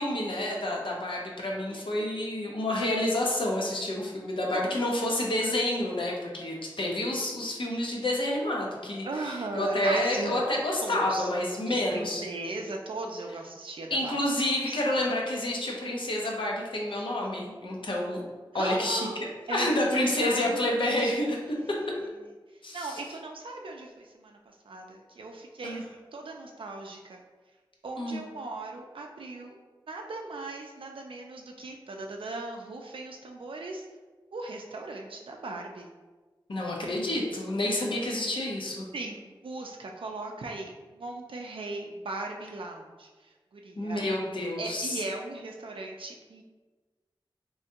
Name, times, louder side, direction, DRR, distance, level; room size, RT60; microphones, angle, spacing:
voice 1, 0.0-12.2 13.9-18.2 18.5-19.1 19.5-21.4 21.7-21.8 22.6-23.0 25.6-25.8 28.0-28.2 36.5-38.9 43.8-45.0, left 1 dB, 70° left, -2 dB, 0.7 m, -29 dB
voice 2, 1.7-2.1 4.5-4.8 9.0-10.4 10.8-11.3 11.6-14.2 14.7-14.8 18.5-19.2 19.5-21.1 21.5-21.7 22.5-25.9 26.1-27.2 27.8-29.6 29.9-33.9 34.3-35.9 38.9-44.1 44.6-46.4, right 2 dB, 75° right, 1 dB, 0.4 m, -38 dB
3.3 x 3.1 x 2.8 m, 1.3 s
wide cardioid pair, 85°, 9 cm